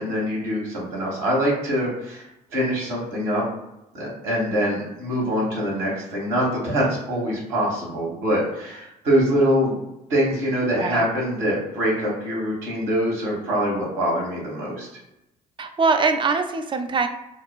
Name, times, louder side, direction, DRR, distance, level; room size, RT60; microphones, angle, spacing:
voice 1, 0.0-3.4 3.9-9.8 10.1-14.9, equal, 70° right, -4 dB, 1.3 m, -24 dB
voice 2, 15.6-17.1, right 4 dB, 25° right, 7 dB, 0.4 m, -22 dB
2.9 x 2.2 x 2.3 m, 0.88 s
hypercardioid pair, 55°, 21 cm